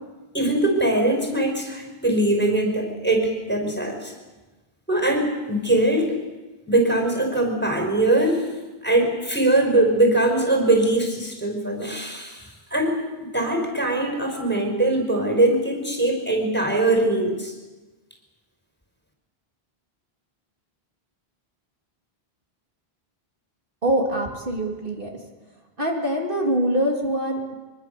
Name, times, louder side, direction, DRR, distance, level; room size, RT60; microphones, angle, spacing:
voice 1, 0.3-4.1 4.9-6.2 6.7-8.4 8.8-17.5, right 2 dB, 10° left, 3 dB, 5.3 m, -22 dB
voice 2, 23.8-25.1 25.8-27.6, right 1 dB, 55° right, 0 dB, 3.1 m, -24 dB
24.5 x 24.0 x 6.9 m, 1.2 s
omnidirectional pair, 1.1 m